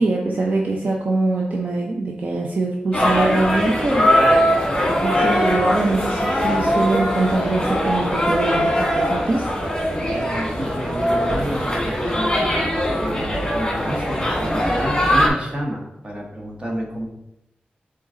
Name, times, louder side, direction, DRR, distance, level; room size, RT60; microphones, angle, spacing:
voice 1, 0.0-4.1 4.9-9.5, right 2 dB, 50° right, -1 dB, 0.7 m, -23 dB
sound 1, 2.9-15.3, equal, 15° left, 1.9 m, -21 dB
voice 2, 10.0-12.5 13.0-17.1, equal, 30° right, 0 dB, 1.4 m, -30 dB
8.0 x 3.9 x 3.8 m, 0.88 s
wide cardioid pair, 135°, 3 cm